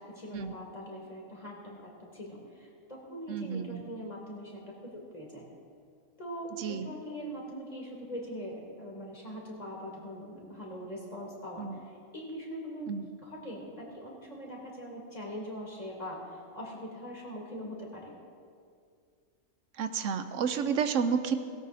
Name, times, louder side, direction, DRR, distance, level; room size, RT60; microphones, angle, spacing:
voice 1, 0.0-5.5 6.2-12.9 13.2-18.2, equal, 30° left, -3 dB, 3.2 m, -42 dB
voice 2, 3.3-3.8 6.6-6.9 11.6-11.8 12.9-13.1 19.8-21.4, right 6 dB, 80° right, 9 dB, 1.0 m, -30 dB
17.5 x 17.0 x 2.7 m, 2.2 s
omnidirectional pair, 1.3 m